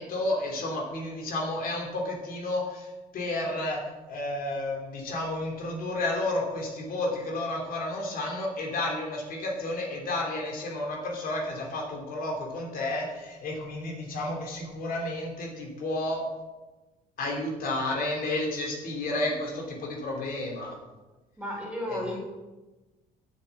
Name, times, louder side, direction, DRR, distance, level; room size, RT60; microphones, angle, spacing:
voice 1, 0.0-3.8 4.1-16.2 17.2-20.8 21.9-22.0, left 2 dB, 60° left, -1 dB, 2.9 m, -31 dB
voice 2, 21.4-22.2, left 1 dB, 5° right, -2 dB, 3.4 m, -33 dB
7.6 x 7.2 x 7.2 m, 1.1 s
cardioid pair, 110°, 17 cm